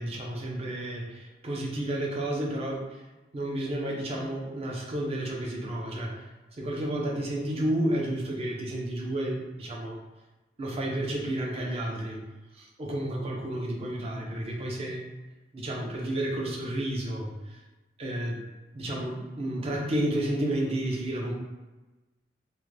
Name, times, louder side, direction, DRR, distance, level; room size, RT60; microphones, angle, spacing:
voice 1, 0.0-2.9 3.3-6.1 6.6-10.0 10.6-12.2 12.6-15.0 15.5-17.3 18.0-18.4 18.7-21.3, right 1 dB, 35° right, -2 dB, 0.5 m, -31 dB
2.4 x 2.2 x 3.1 m, 1.1 s
head